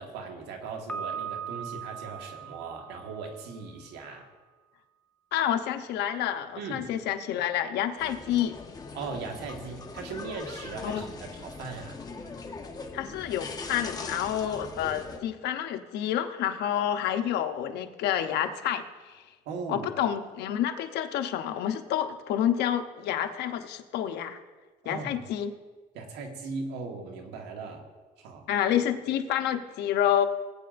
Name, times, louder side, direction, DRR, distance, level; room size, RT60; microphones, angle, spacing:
voice 1, 0.0-4.3 6.6-6.9 8.9-12.0 19.5-19.9 24.8-25.2 25.9-27.9 28.2-28.5, right 4 dB, 90° right, 3 dB, 1.6 m, -38 dB
Piano, 0.9-3.8, right 7 dB, 5° left, 0.5 m, -39 dB
voice 2, 5.3-8.5 10.8-11.0 12.9-19.2 19.7-24.4 24.8-25.5 28.5-30.2, left 10 dB, 80° left, 7 dB, 0.9 m, -29 dB
sound 1, 8.0-15.2, left 4 dB, 25° left, 1.1 m, -41 dB
19.0 x 8.7 x 2.6 m, 1.3 s
cardioid pair, 110°, 17 cm